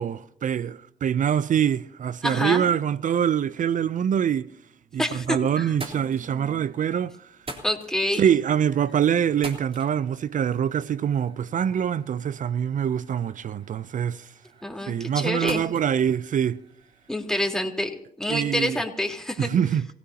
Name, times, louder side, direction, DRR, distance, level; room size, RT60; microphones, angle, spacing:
voice 1, 0.0-4.5 4.9-7.3 8.2-14.3 14.9-16.6 18.3-18.8 19.4-19.9, right 8 dB, 55° right, 0.5 m, -24 dB
voice 2, 2.2-2.7 5.0-5.7 7.6-8.2 14.6-15.6 17.1-19.5, left 1 dB, 5° left, 3.8 m, -27 dB
sound 1, 4.7-5.3 5.6-17.2, right 2 dB, 35° right, 3.7 m, -46 dB
27.5 x 17.5 x 2.9 m
hypercardioid pair, 45°, 16 cm